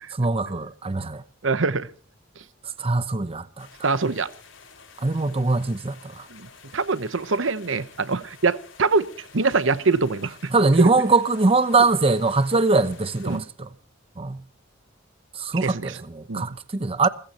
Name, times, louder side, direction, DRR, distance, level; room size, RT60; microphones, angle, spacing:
voice 1, 0.1-1.2 2.8-3.7 5.0-6.3 10.5-13.7 14.2-14.4 15.3-17.1, right 3 dB, 30° right, 0.7 m, -22 dB
voice 2, 1.4-1.9 3.8-4.3 6.3-6.5 6.7-9.1 9.3-10.5 10.8-10.9 13.2-13.4 15.6-16.0 16.3-16.5, right 4 dB, 70° right, 0.9 m, -24 dB
sound 1, 3.6-13.4, left 5 dB, 70° left, 5.1 m, -50 dB
29.0 x 15.5 x 2.9 m
head